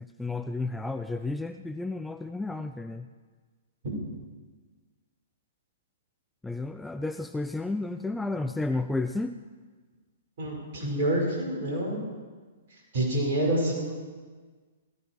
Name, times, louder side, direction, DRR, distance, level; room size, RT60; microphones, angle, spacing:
voice 1, 0.0-3.1 6.4-9.4, left 2 dB, 5° left, 9 dB, 0.4 m, -32 dB
voice 2, 10.4-12.0 12.9-14.1, right 1 dB, 50° right, -1 dB, 5.6 m, -27 dB
17.5 x 14.0 x 4.8 m, 1.4 s
figure-of-eight pair, 110°, 0 cm